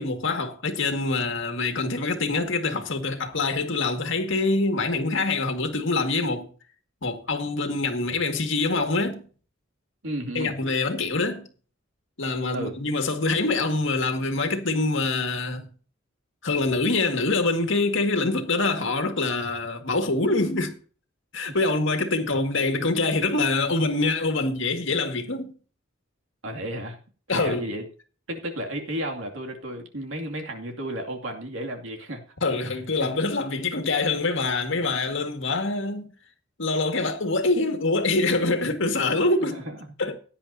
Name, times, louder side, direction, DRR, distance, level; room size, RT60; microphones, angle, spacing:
voice 1, 0.0-6.5 7.0-9.3 10.3-11.5 12.2-15.7 16.4-20.8 21.3-25.5 27.3-27.7 32.4-36.1 36.6-39.6 40.0-40.1, left 3 dB, 70° left, 2.0 m, -25 dB
voice 2, 10.0-10.5 12.5-12.8 21.5-21.7 26.4-27.0 27.3-27.8 28.3-32.2 33.0-33.1 39.5-39.9, right 1 dB, 70° right, 2.6 m, -33 dB
17.0 x 10.0 x 2.8 m
head